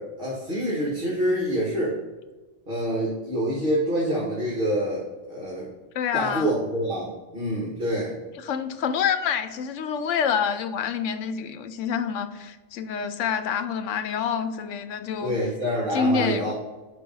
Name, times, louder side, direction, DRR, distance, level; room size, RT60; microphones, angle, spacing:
voice 1, 0.0-2.0 2.7-5.7 6.1-8.2 15.2-16.5, equal, 45° right, -5 dB, 1.9 m, -26 dB
voice 2, 5.9-6.6 8.4-15.3 15.9-16.5, left 7 dB, 85° left, 10 dB, 1.0 m, -27 dB
5.3 x 5.0 x 5.3 m, 1.2 s
omnidirectional pair, 1.3 m